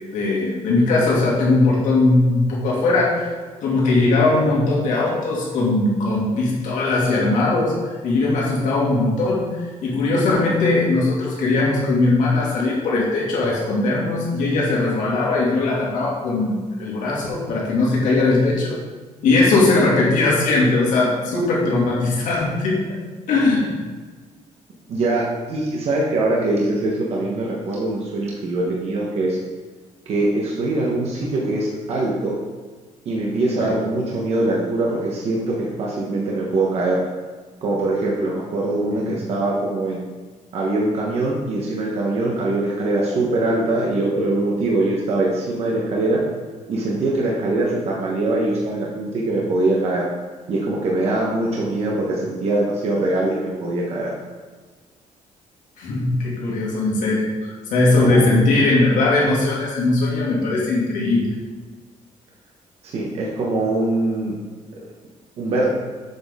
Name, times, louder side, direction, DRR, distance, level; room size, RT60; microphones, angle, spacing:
voice 1, 0.1-3.3 3.6-18.8 19.2-23.0 23.3-23.7 33.6-33.7 38.9-39.1 55.8-61.3, left 2 dB, 75° left, -4 dB, 2.3 m, -19 dB
voice 2, 24.9-29.4 30.1-32.4 33.0-37.0 37.6-40.0 40.5-46.2 46.7-50.1 50.5-54.1 58.0-58.5 62.8-64.3 65.4-65.7, right 2 dB, 50° right, -3 dB, 1.2 m, -22 dB
7.8 x 6.1 x 3.7 m, 1.4 s
cardioid pair, 170°, 13 cm